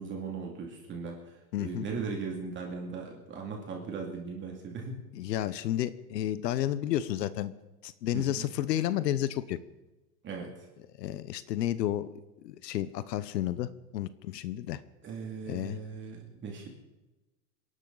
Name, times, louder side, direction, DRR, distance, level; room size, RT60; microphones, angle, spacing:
voice 1, 0.0-5.0 8.1-8.5 10.2-10.7 15.0-16.7, right 5 dB, 25° right, 0 dB, 2.6 m, -38 dB
voice 2, 1.5-1.8 5.1-7.5 7.8-9.6 11.0-12.1 12.4-14.8 15.5-15.8, left 12 dB, 85° left, 15 dB, 1.0 m, -31 dB
27.0 x 11.5 x 4.0 m, 1.1 s
supercardioid pair, 150°, 48 cm